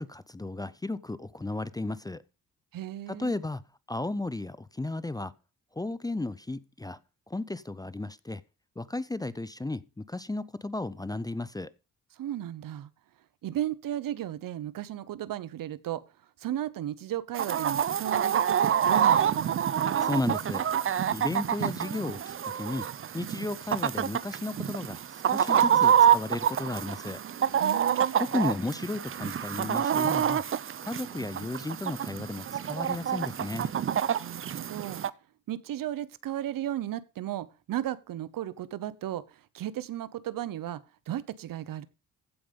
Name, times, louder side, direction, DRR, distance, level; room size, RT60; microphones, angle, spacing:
voice 1, 0.0-2.2 3.1-3.6 3.9-5.3 5.7-7.0 7.3-8.4 8.8-11.7 20.0-20.6 21.1-22.9 23.1-27.2 28.2-30.4 30.8-33.7, left 2 dB, 10° left, 0.5 m, -34 dB
voice 2, 2.7-3.3 12.2-12.9 13.4-16.0 16.4-19.6 27.6-28.2 34.2-35.0 35.5-39.2 39.5-41.9, right 12 dB, 70° right, 0.9 m, -35 dB
Chicken rooster, 17.3-35.1, right 9 dB, 40° right, 0.6 m, -27 dB
15.0 x 5.3 x 5.2 m
cardioid pair, 90°, 35 cm